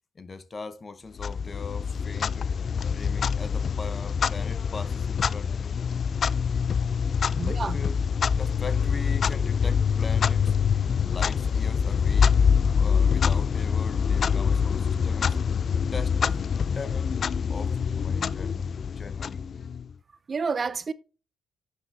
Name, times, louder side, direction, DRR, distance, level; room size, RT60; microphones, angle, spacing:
voice 1, 0.1-2.5 2.9-5.8 7.4-8.0 8.3-10.5 11.0-12.3 12.7-15.4 15.9-16.2 16.7-17.2 17.5-19.4, left 4 dB, 35° left, 0.9 m, -40 dB
Clock, 1.2-19.9, left 6 dB, 50° left, 0.3 m, -25 dB
voice 2, 7.4-7.8 20.3-20.9, right 5 dB, 35° right, 0.5 m, -29 dB
11.0 x 7.5 x 3.3 m
cardioid pair, 90°, 0 cm